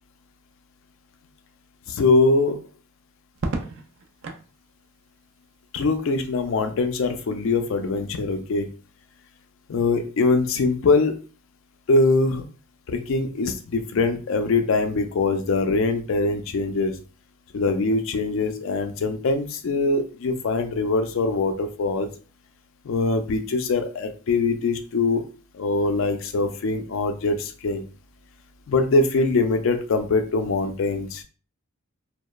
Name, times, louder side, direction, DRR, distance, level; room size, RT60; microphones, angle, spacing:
voice 1, 1.9-2.6 5.7-8.6 9.7-11.1 11.9-12.4 12.9-16.9 17.5-22.1 22.8-25.2 25.5-27.9 28.7-31.2, left 3 dB, 65° left, 7 dB, 0.4 m, -22 dB
Crackle, 3.3-4.5 6.1-6.6, right 3 dB, 60° right, 0.4 m, -33 dB
2.9 x 2.0 x 2.2 m, 0.38 s
head